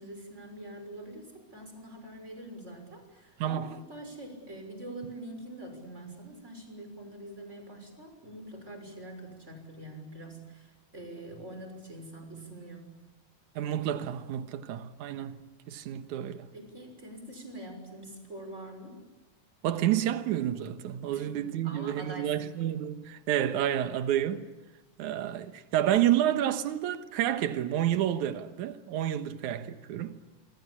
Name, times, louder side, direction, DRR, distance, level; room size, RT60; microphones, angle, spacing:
voice 1, 0.0-12.9 16.5-19.0 21.1-22.5, right 1 dB, 20° right, 6.4 m, -44 dB
voice 2, 13.6-16.5 19.6-24.5 25.0-30.2, right 11 dB, 70° right, 2.6 m, -29 dB
26.5 x 26.0 x 8.7 m
omnidirectional pair, 3.7 m